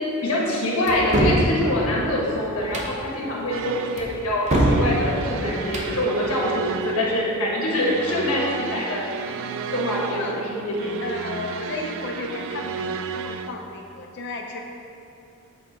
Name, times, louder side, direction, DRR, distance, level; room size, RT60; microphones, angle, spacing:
voice 1, 0.2-9.1 9.7-11.1, left 1 dB, 85° left, -4 dB, 1.3 m, -25 dB
sound 1, 0.9-1.4 2.6-2.9 4.0-4.8 5.6-5.9, right 1 dB, 35° right, 0.8 m, -22 dB
sound 2, 3.5-13.5, right 6 dB, 65° right, 0.3 m, -33 dB
voice 2, 11.0-14.6, left 3 dB, 55° left, 2 dB, 0.5 m, -33 dB
7.9 x 3.2 x 4.5 m, 2.8 s
head